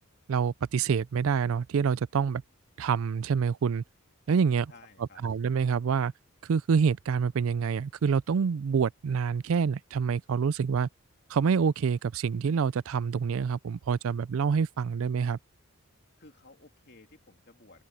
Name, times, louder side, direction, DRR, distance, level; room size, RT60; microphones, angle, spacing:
voice 1, 0.3-2.4 2.8-3.8 4.3-4.7 5.2-6.1 6.4-10.9 11.3-15.4, right 6 dB, 70° right, 0.4 m, -27 dB
voice 2, 4.7-5.3 16.2-17.8, left 3 dB, 50° left, 2.9 m, -55 dB
head